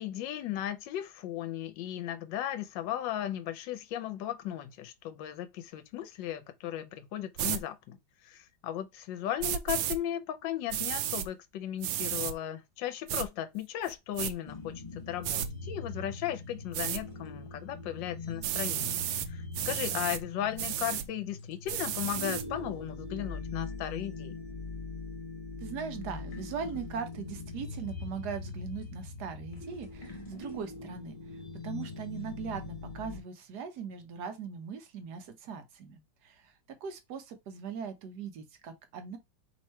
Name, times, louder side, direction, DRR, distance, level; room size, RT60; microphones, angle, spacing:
voice 1, 0.0-8.0 8.2-24.4, left 12 dB, 75° left, 1.3 m, -36 dB
sound 1, 7.4-7.6 9.4-10.0 10.7-11.3 11.8-12.3 13.1-13.3 13.8-14.3 15.2-15.5 16.7-17.0 18.4-19.3 19.5-20.2 20.6-21.1 21.7-22.4, right 11 dB, 85° right, 1.3 m, -33 dB
sound 2, 14.4-33.2, left 3 dB, 30° left, 0.7 m, -42 dB
voice 2, 25.6-31.2 31.6-36.5 36.8-39.2, right 6 dB, 65° right, 1.2 m, -40 dB
3.5 x 3.1 x 4.3 m
omnidirectional pair, 2.1 m